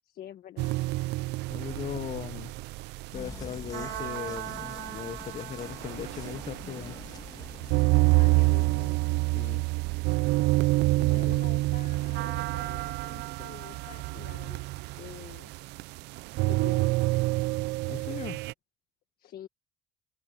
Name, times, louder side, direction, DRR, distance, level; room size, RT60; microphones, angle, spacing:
voice 1, 0.1-0.8 8.1-9.0 11.1-14.6 15.0-15.5 16.5-16.9 19.2-19.5, left 11 dB, 65° left, 1.5 m, -47 dB
sound 1, 0.6-18.5, right 22 dB, 85° right, 0.4 m, -28 dB
voice 2, 1.5-2.5 3.1-7.0 9.3-9.6 10.8-11.4 17.9-18.4, left 9 dB, 40° left, 0.6 m, -38 dB
sound 2, 3.1-8.9, left 4 dB, 20° left, 2.3 m, -45 dB
cardioid pair, 110°, 17 cm